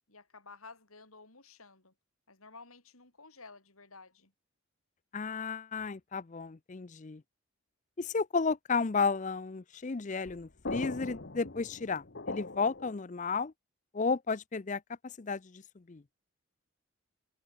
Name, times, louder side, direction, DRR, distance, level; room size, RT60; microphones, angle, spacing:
voice 1, 0.1-1.9 2.3-4.3, left 4 dB, 85° left, 6.7 m, -53 dB
voice 2, 5.1-7.2 8.0-13.5 13.9-16.0, left 4 dB, 35° left, 0.5 m, -33 dB
sound 1, 10.3-12.9, left 3 dB, 50° left, 1.1 m, -40 dB
head